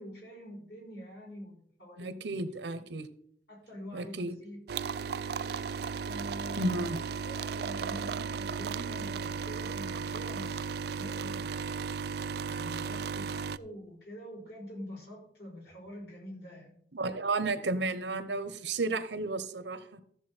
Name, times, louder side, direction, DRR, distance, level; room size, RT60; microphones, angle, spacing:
voice 1, 0.0-2.1 3.5-4.6 6.0-6.9 7.2-11.8 12.5-16.8, equal, 65° left, -3 dB, 5.5 m, -45 dB
voice 2, 2.0-3.1 3.9-4.4 6.6-7.0 16.9-20.0, right 2 dB, 75° right, 13 dB, 0.9 m, -33 dB
sound 1, 4.7-13.6, right 6 dB, 60° right, 0.4 m, -35 dB
14.0 x 7.0 x 4.4 m, 0.66 s
head